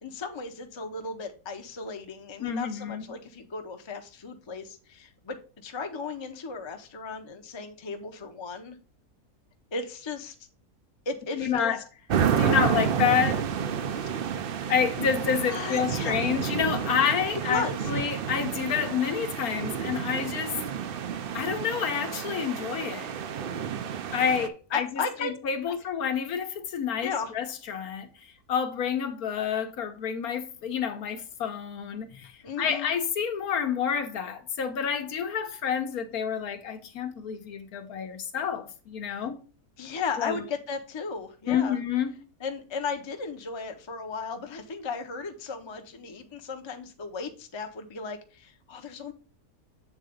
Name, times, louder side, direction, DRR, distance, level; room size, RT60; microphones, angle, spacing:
voice 1, 0.0-5.4 5.6-8.8 9.7-10.4 11.1-11.8 13.9-14.2 15.5-16.2 17.5-17.8 24.7-25.3 27.0-27.3 32.4-32.9 39.1-39.2 39.8-41.8 42.4-49.1, left 4 dB, 25° left, 0.6 m, -35 dB
voice 2, 2.4-3.0 11.3-11.8 12.4-13.5 14.7-20.6 21.3-23.1 24.1-39.4 40.2-40.4 41.5-42.2, left 7 dB, 75° left, 1.4 m, -29 dB
sound 1, 12.1-24.5, right 8 dB, 70° right, 0.5 m, -30 dB
7.4 x 3.8 x 5.0 m
omnidirectional pair, 1.6 m